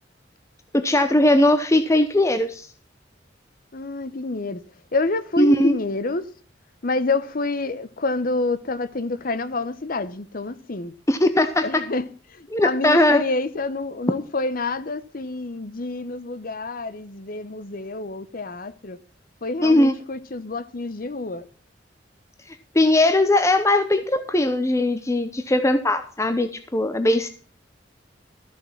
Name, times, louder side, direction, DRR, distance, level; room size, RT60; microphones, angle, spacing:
voice 1, 0.7-2.7 5.4-5.7 11.1-11.6 12.5-13.2 19.6-19.9 22.7-27.3, left 1 dB, 15° left, 0.8 m, -19 dB
voice 2, 3.7-4.6 4.9-6.3 6.8-11.0 11.6-19.0 19.4-21.5, left 3 dB, 50° left, 0.9 m, -28 dB
14.0 x 7.0 x 5.8 m
head